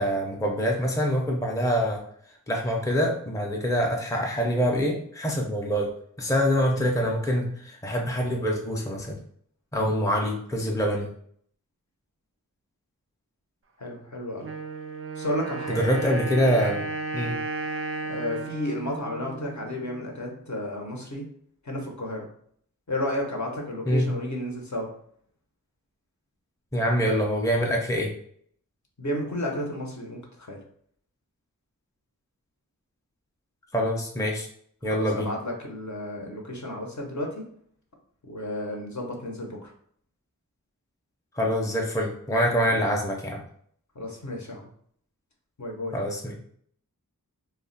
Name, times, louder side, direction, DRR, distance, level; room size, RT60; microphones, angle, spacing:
voice 1, 0.0-2.0 2.5-5.9 6.2-9.2 9.7-11.1 15.7-16.9 17.1-17.4 23.9-24.1 26.7-28.1 33.7-34.5 34.8-35.3 41.3-43.4 45.9-46.3, equal, 10° left, 0 dB, 0.5 m, -25 dB
voice 2, 13.8-14.5 15.2-15.8 18.1-21.2 21.6-22.3 22.9-24.9 29.0-30.6 34.9-37.4 38.2-39.7 42.7-42.8 43.9-44.7 45.6-46.0, left 1 dB, 55° left, 0 dB, 0.8 m, -32 dB
Wind instrument woodwind instrument, 14.4-20.1, right 3 dB, 40° right, 0.4 m, -34 dB
2.3 x 2.1 x 3.8 m, 0.63 s
wide cardioid pair, 45°, 35 cm